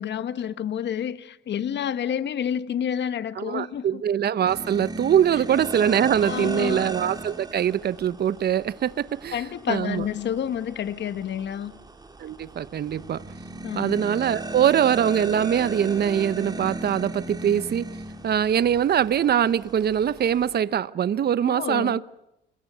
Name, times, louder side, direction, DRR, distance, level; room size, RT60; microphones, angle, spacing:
voice 1, 0.0-4.0 6.2-6.9 9.3-11.7 13.6-14.0 21.4-22.0, left 9 dB, 65° left, 1.4 m, -29 dB
voice 2, 3.4-9.4 9.7-10.0 12.2-13.2 13.7-17.9 18.2-22.0, right 9 dB, 55° right, 0.9 m, -23 dB
sound 1, 4.5-20.6, right 2 dB, 20° right, 3.7 m, -37 dB
27.5 x 21.0 x 6.9 m
cardioid pair, 90°, 20 cm